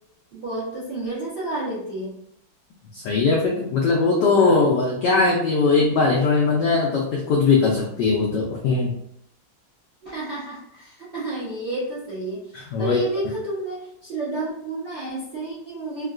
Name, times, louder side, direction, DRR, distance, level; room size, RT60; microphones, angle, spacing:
voice 1, 0.3-2.2 10.0-12.4 12.8-16.1, right 2 dB, 50° right, -9 dB, 0.6 m, -30 dB
voice 2, 2.9-8.9 12.5-13.0, left 4 dB, 80° left, -1 dB, 0.9 m, -20 dB
3.6 x 2.2 x 2.4 m, 0.75 s
omnidirectional pair, 2.3 m